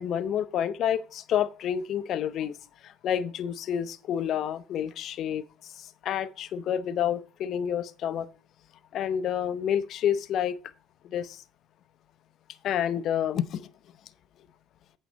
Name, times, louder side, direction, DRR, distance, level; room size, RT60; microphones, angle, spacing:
voice 1, 0.0-2.5 2.8-5.4 5.7-8.3 8.9-10.6 11.0-11.4 12.6-13.7, left 9 dB, 55° left, 0.6 m, -29 dB
8.4 x 5.5 x 5.2 m
hypercardioid pair, 70°, 0 cm